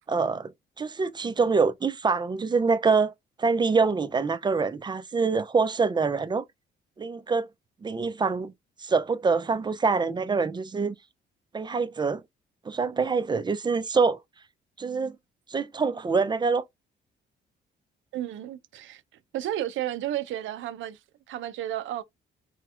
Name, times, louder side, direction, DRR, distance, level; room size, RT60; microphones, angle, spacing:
voice 1, 0.1-0.5 0.8-3.1 3.4-6.4 7.0-7.5 7.8-8.5 8.8-11.0 11.5-12.2 12.7-14.2 14.8-15.2 15.5-16.6, right 4 dB, 20° right, 0.4 m, -25 dB
voice 2, 18.1-19.0 19.3-21.0 21.3-22.0, right 12 dB, 80° right, 0.5 m, -32 dB
3.1 x 2.8 x 2.3 m
cardioid pair, 90°, 20 cm